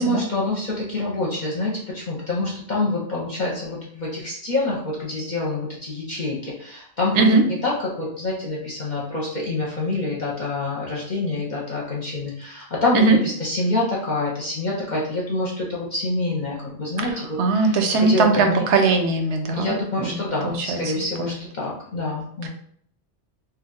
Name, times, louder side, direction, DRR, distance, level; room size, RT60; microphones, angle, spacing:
voice 1, 0.0-18.7 19.5-22.5, left 2 dB, 50° left, -4 dB, 0.7 m, -26 dB
voice 2, 17.0-19.7 20.0-20.2 20.4-20.8 21.2-21.3 22.4-22.5, right 4 dB, 80° right, 5 dB, 0.9 m, -19 dB
2.8 x 2.3 x 3.8 m, 0.64 s
omnidirectional pair, 1.2 m